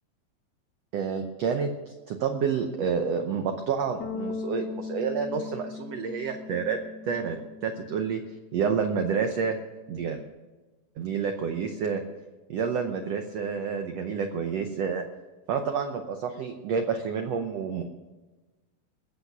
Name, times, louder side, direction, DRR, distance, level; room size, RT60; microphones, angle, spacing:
voice 1, 0.9-6.8 7.1-7.4 7.6-8.2 8.5-9.6 9.9-10.2 11.0-12.0 12.5-15.1 15.5-17.8, right 6 dB, 90° right, 6 dB, 1.4 m, -29 dB
Bass guitar, 4.0-10.3, left 4 dB, 70° left, 2.2 m, -40 dB
21.0 x 8.1 x 6.0 m, 1.2 s
omnidirectional pair, 4.1 m